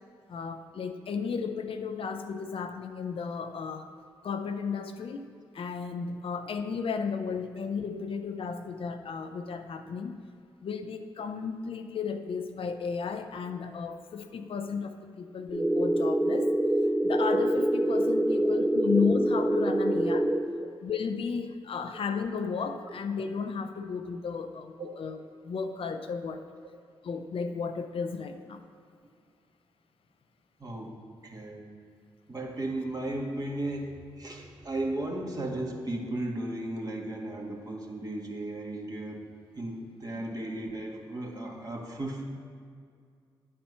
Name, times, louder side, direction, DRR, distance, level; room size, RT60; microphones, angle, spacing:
voice 1, 0.3-3.9 4.2-5.3 5.5-10.2 10.6-16.5 17.0-20.3 20.8-25.2 25.4-26.4 27.0-28.6 40.2-40.3, left 5 dB, 65° left, 7 dB, 0.6 m, -33 dB
sound 1, 15.5-20.5, right 1 dB, 10° right, 0.5 m, -25 dB
voice 2, 30.6-30.9 31.2-31.7 32.3-39.3 39.5-42.3, right 1 dB, 40° right, 0 dB, 1.6 m, -35 dB
9.4 x 4.4 x 5.6 m, 2.3 s
supercardioid pair, 45°, 10 cm